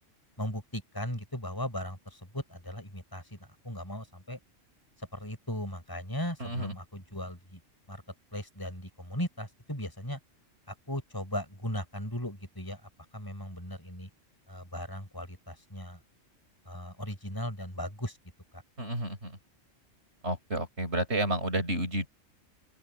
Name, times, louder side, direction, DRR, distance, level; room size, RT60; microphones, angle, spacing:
voice 1, 0.4-3.4 3.6-4.4 5.1-7.6 7.9-8.0 8.3-10.2 10.7-12.8 13.1-14.1 14.5-16.0 16.7-18.2 18.5-18.6, left 1 dB, 15° left, 6.9 m, -37 dB
voice 2, 6.4-6.7 18.8-19.4 20.2-22.1, right 1 dB, 55° right, 7.0 m, -31 dB
open air
omnidirectional pair, 1.3 m